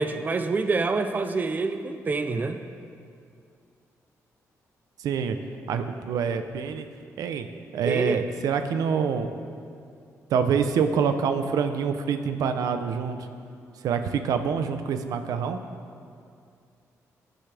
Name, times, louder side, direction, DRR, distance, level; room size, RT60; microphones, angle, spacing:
voice 1, 0.0-2.6 7.9-8.2, right 3 dB, 30° right, 8 dB, 0.6 m, -26 dB
voice 2, 5.0-5.4 5.7-6.9 7.2-7.5 7.7-9.3 10.3-13.2 13.8-15.6, right 6 dB, 90° right, 8 dB, 0.7 m, -26 dB
17.5 x 10.0 x 3.5 m, 2.4 s
cardioid pair, 125°, 6 cm